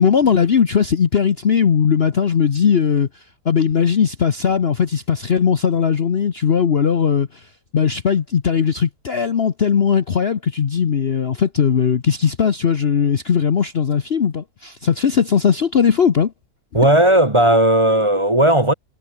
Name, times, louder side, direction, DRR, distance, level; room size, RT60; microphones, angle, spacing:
voice 1, 0.0-3.1 3.4-7.5 7.7-16.3, left 7 dB, 45° left, 1.0 m, -18 dB
voice 2, 16.7-18.7, right 1 dB, 20° right, 1.7 m, -15 dB
omnidirectional pair, 1.8 m